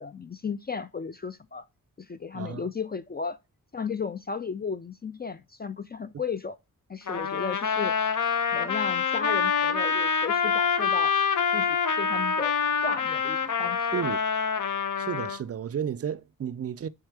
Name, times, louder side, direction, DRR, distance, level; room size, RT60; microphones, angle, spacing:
voice 1, 0.0-1.6 2.0-3.4 3.7-6.6 6.9-7.9 8.5-11.2 11.5-12.5 12.8-14.0, left 5 dB, 30° left, 0.4 m, -34 dB
voice 2, 2.3-2.7 13.9-14.2 15.0-16.9, right 8 dB, 45° right, 0.4 m, -32 dB
Trumpet, 7.1-15.4, left 6 dB, 60° left, 0.8 m, -26 dB
4.5 x 4.4 x 4.7 m
cardioid pair, 70°, 34 cm